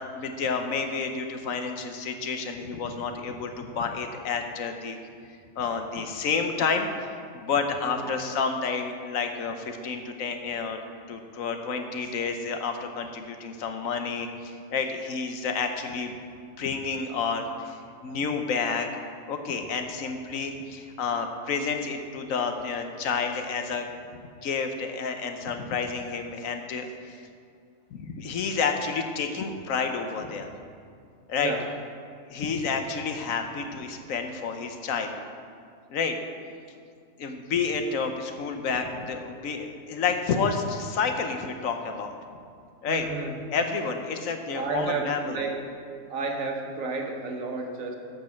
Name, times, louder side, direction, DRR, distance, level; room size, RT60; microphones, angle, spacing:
voice 1, 0.1-5.0 5.6-6.9 7.3-10.8 11.1-18.9 19.3-23.9 24.4-27.3 27.9-30.5 31.3-31.5 32.3-35.1 35.9-36.2 37.2-42.1 42.8-43.1 43.5-45.4, left 5 dB, 80° left, 5 dB, 1.2 m, -30 dB
voice 2, 42.9-43.4 44.5-45.6 46.1-48.0, right 4 dB, 75° right, 2 dB, 1.5 m, -31 dB
14.0 x 5.3 x 5.8 m, 2.2 s
omnidirectional pair, 1.4 m